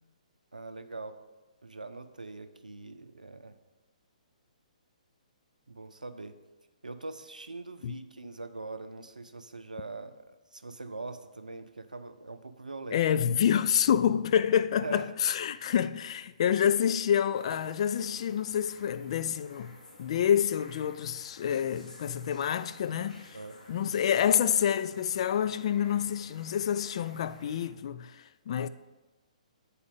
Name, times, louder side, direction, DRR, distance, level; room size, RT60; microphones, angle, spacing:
voice 1, 0.5-1.2 1.6-3.6 5.7-6.4 6.8-13.1 14.8-15.0 23.3-23.6, right 3 dB, 85° right, 0.5 m, -42 dB
voice 2, 12.9-23.4 23.7-28.7, left 9 dB, 50° left, 0.3 m, -28 dB
sound 1, 17.3-27.7, left 2 dB, 65° left, 1.2 m, -53 dB
8.4 x 4.3 x 5.1 m
figure-of-eight pair, 125°, 4 cm